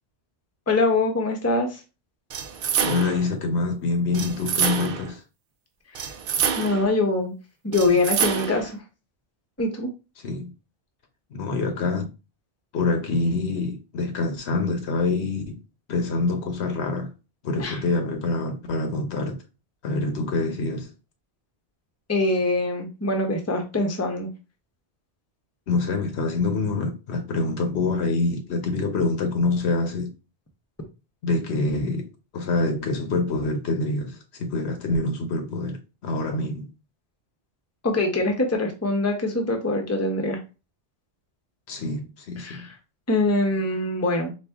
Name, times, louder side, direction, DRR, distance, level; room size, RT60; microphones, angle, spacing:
voice 1, 0.7-1.8 5.9-6.0 6.6-7.3 7.6-8.8 9.6-9.9 17.6-17.8 22.1-24.3 37.8-40.4 42.4-42.7 43.1-44.3, left 2 dB, 15° left, 0.8 m, -23 dB
sound 1, 2.3-3.3 4.1-5.1 6.0-6.9 7.7-8.7, right 7 dB, 60° right, 0.7 m, -27 dB
voice 2, 2.8-5.2 10.2-10.5 11.3-12.1 12.7-15.6 15.9-17.1 17.4-19.4 19.8-20.9 25.7-30.1 31.2-32.1 32.3-36.7 41.7-42.7, left 3 dB, 80° left, 1.1 m, -26 dB
4.3 x 2.5 x 3.5 m
omnidirectional pair, 1.1 m